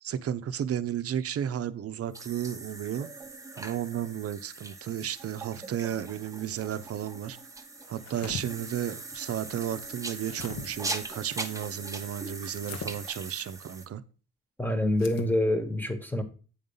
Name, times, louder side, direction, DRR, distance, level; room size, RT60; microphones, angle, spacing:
voice 1, 0.0-3.1 3.6-7.4 7.9-14.0, right 10 dB, 50° right, 0.7 m, -33 dB
sound 1, 2.1-13.9, right 3 dB, 10° right, 0.9 m, -41 dB
sound 2, 7.9-8.4 9.9-10.7 12.5-12.9 14.9-15.3, left 5 dB, 60° left, 1.2 m, -40 dB
voice 2, 14.6-16.2, left 1 dB, 5° left, 1.3 m, -26 dB
8.6 x 3.7 x 5.5 m
cardioid pair, 90°, 30 cm